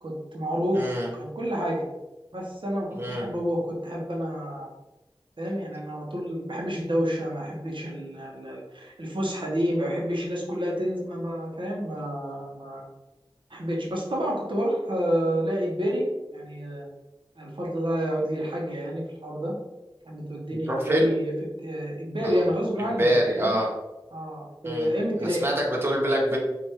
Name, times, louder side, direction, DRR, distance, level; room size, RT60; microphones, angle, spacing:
voice 1, 0.0-1.8 2.3-4.7 5.4-12.9 13.5-16.0 16.3-16.9 17.4-19.5 20.0-21.3 21.6-23.6 24.1-25.5, equal, 65° right, -3 dB, 0.9 m, -29 dB
voice 2, 0.8-1.1 2.9-3.3 20.7-21.1 22.2-22.4 23.0-23.7 24.6-24.9 25.2-26.4, equal, 25° right, -2 dB, 0.8 m, -25 dB
4.7 x 2.5 x 2.9 m, 1.0 s
wide cardioid pair, 50°, 9 cm